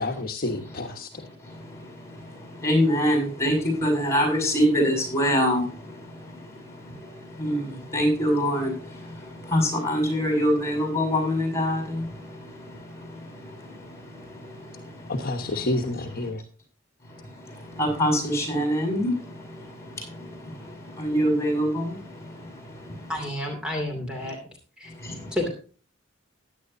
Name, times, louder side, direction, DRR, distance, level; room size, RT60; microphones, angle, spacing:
voice 1, 0.0-1.2 15.1-16.4, left 2 dB, 50° left, 1.3 m, -29 dB
voice 2, 1.4-15.1 17.1-23.1 25.0-25.4, equal, 15° left, 6.5 m, -26 dB
voice 3, 23.1-24.4 24.8-24.9 25.3-25.5, left 1 dB, 5° right, 2.7 m, -30 dB
16.0 x 10.5 x 2.7 m
head